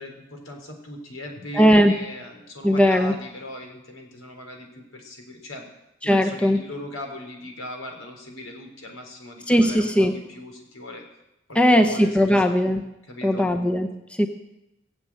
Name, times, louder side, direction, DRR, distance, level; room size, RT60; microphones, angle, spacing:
voice 1, 0.0-5.6 6.0-11.0 11.5-12.5 13.0-13.5, left 1 dB, 80° left, 3 dB, 3.9 m, -39 dB
voice 2, 1.5-1.9 2.6-3.1 6.0-6.6 9.5-10.1 11.5-12.8 13.2-13.9 14.2-14.3, equal, 5° left, 5 dB, 0.8 m, -18 dB
19.5 x 7.9 x 8.6 m, 0.90 s
head